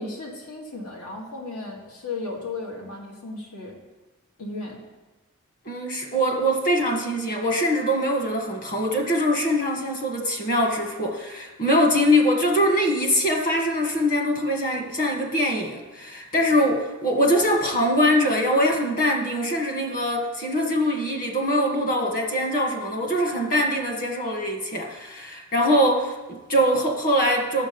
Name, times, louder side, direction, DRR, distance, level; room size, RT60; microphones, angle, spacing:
voice 1, 0.0-3.8 4.4-4.8, left 3 dB, 90° left, -1 dB, 2.2 m, -35 dB
voice 2, 5.6-27.7, equal, 40° left, 2 dB, 1.5 m, -23 dB
9.7 x 7.4 x 5.2 m, 1.1 s
head